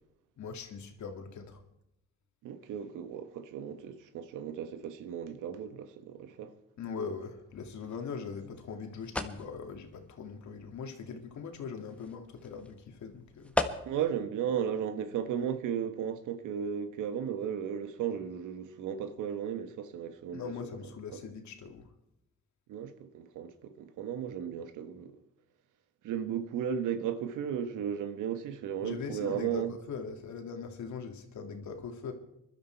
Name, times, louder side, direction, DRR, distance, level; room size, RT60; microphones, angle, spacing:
voice 1, 0.4-1.6 6.8-13.5 20.3-21.9 28.8-32.1, left 5 dB, 70° left, 2.3 m, -41 dB
voice 2, 2.4-6.5 13.9-20.7 21.1-21.2 22.7-25.1 26.0-29.7, right 8 dB, 90° right, 1.4 m, -35 dB
sound 1, 7.8-14.2, left 1 dB, 5° left, 1.4 m, -40 dB
21.0 x 12.0 x 4.6 m
cardioid pair, 90°, 30 cm